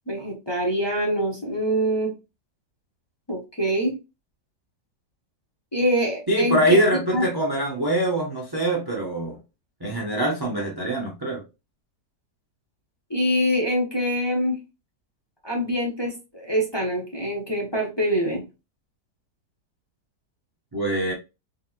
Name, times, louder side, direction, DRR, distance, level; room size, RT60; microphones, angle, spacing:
voice 1, 0.1-2.1 3.3-3.9 5.7-6.8 7.1-7.2 13.1-14.6 15.4-18.4, equal, 25° left, -2 dB, 0.6 m, -24 dB
voice 2, 6.3-9.4 9.8-11.4 20.7-21.1, right 1 dB, 40° right, -2 dB, 0.3 m, -23 dB
4.0 x 2.8 x 2.4 m, 0.27 s
omnidirectional pair, 1.8 m